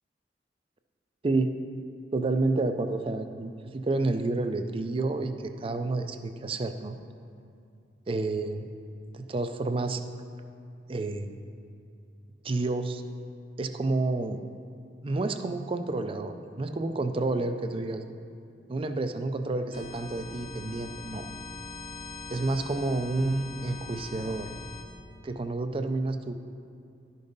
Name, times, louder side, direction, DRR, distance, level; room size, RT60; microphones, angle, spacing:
voice 1, 2.1-7.0 8.1-8.7 9.1-10.0 10.9-11.3 12.4-13.0 13.6-14.4 15.0-18.0 18.7-21.3 22.3-24.5 25.2-26.4, right 2 dB, 30° right, 8 dB, 0.4 m, -29 dB
sound 1, 19.7-24.8, left 3 dB, 45° left, 0.8 m, -42 dB
11.5 x 5.3 x 3.9 m, 2.5 s
head